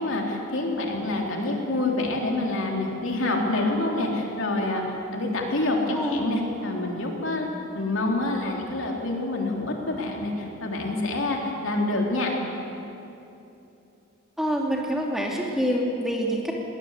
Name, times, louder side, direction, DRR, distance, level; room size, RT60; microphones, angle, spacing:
voice 1, 0.0-4.8 5.1-12.4, left 2 dB, 65° left, 0 dB, 3.5 m, -27 dB
voice 2, 5.9-6.3 14.4-16.5, equal, ahead, -1 dB, 2.6 m, -26 dB
22.5 x 19.0 x 8.3 m, 2.8 s
head